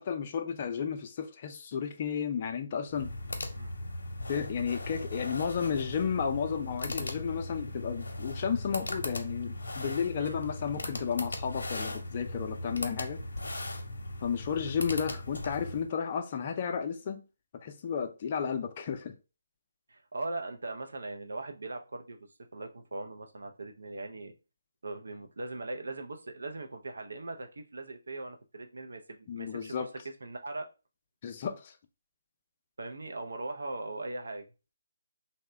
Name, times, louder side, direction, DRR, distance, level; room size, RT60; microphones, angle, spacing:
voice 1, 0.0-3.1 4.3-13.2 14.2-17.2 17.6-19.1 29.3-29.9 31.2-31.7, left 7 dB, 35° left, 0.4 m, -33 dB
sound 1, 2.9-15.9, left 1 dB, 80° left, 0.6 m, -38 dB
voice 2, 19.9-24.3 24.8-30.7 32.8-34.5, right 2 dB, 75° right, 0.6 m, -40 dB
2.8 x 2.1 x 3.3 m
figure-of-eight pair, 155°, 0 cm